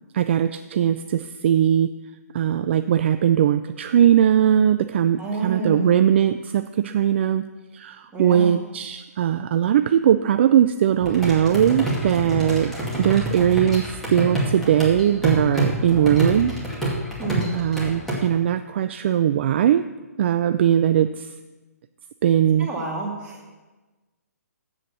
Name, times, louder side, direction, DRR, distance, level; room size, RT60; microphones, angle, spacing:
voice 1, 0.1-1.9 2.3-7.5 7.7-16.5 17.5-19.8 20.2-21.3 22.2-22.7, right 10 dB, 45° right, 10 dB, 0.3 m, -20 dB
voice 2, 5.2-5.9 8.1-8.5 17.2-17.5 22.6-23.4, right 2 dB, 15° right, -2 dB, 2.1 m, -29 dB
sound 1, 11.0-18.2, equal, 5° left, 2.2 m, -27 dB
7.9 x 7.5 x 6.9 m, 1.2 s
figure-of-eight pair, 135°, 9 cm